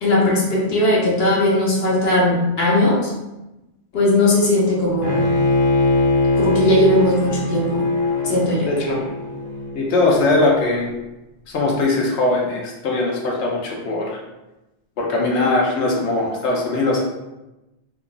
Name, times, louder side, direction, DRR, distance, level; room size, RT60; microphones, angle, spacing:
voice 1, 0.0-3.1 3.9-5.3 6.4-7.9 8.2-8.7, left 1 dB, 70° left, -4 dB, 1.1 m, -18 dB
Bowed string instrument, 5.0-10.1, left 2 dB, 40° left, 0.3 m, -21 dB
voice 2, 8.7-9.0 9.7-10.9 11.5-14.2 15.0-17.1, left 2 dB, 90° left, -2 dB, 1.0 m, -20 dB
2.8 x 2.3 x 3.9 m, 0.99 s
omnidirectional pair, 1.1 m